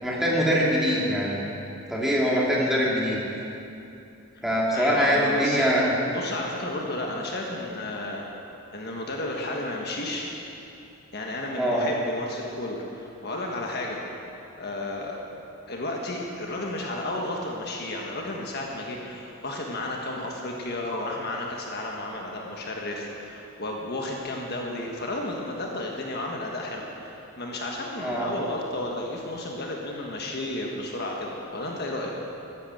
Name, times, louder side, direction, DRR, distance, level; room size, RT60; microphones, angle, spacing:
voice 1, 0.0-1.4 1.9-3.2 4.4-5.9 11.6-11.8 28.0-28.3, equal, ahead, -6 dB, 2.7 m, -23 dB
voice 2, 4.7-5.7 6.1-8.2 8.7-10.3 11.1-14.0 14.5-15.2 15.7-32.1, left 1 dB, 50° left, -1 dB, 1.5 m, -32 dB
14.5 x 10.5 x 7.8 m, 2.9 s
head